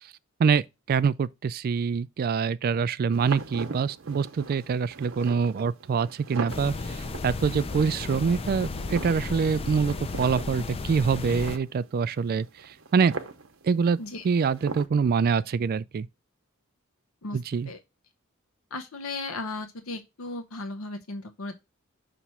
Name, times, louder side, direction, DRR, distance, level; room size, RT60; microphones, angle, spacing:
voice 1, 0.9-13.1 13.6-14.0 14.2-16.1 17.3-17.7, right 5 dB, 45° right, 0.3 m, -25 dB
sound 1, 3.1-14.9, right 4 dB, 65° right, 0.8 m, -41 dB
sound 2, 6.5-11.6, left 3 dB, 25° left, 0.4 m, -34 dB
voice 2, 18.7-21.6, left 2 dB, 70° left, 0.7 m, -36 dB
5.9 x 3.0 x 5.5 m
head